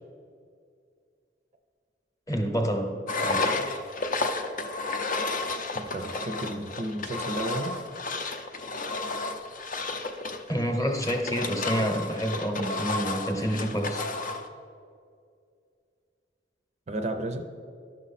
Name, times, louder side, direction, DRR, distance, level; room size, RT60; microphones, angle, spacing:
voice 1, 2.3-3.0 3.2-3.7 10.5-14.1, equal, 20° left, 4 dB, 0.9 m, -28 dB
Engine, 3.1-14.5, left 3 dB, 50° left, 0.6 m, -32 dB
voice 2, 5.7-7.8 16.9-17.5, right 1 dB, 40° right, 7 dB, 0.5 m, -33 dB
11.5 x 6.2 x 4.2 m, 2.3 s
head